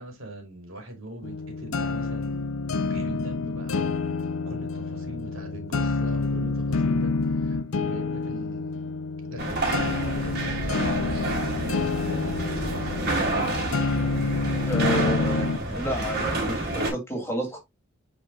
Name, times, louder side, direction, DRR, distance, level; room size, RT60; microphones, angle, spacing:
voice 1, 0.0-8.9 9.3-13.0, right 1 dB, 70° right, 2.6 m, -41 dB
sound 1, 1.2-15.6, left 4 dB, 85° left, 0.6 m, -28 dB
sound 2, 9.4-16.9, right 2 dB, 50° right, 2.8 m, -29 dB
voice 2, 14.7-17.6, equal, 15° left, 2.5 m, -31 dB
9.5 x 4.4 x 2.3 m
head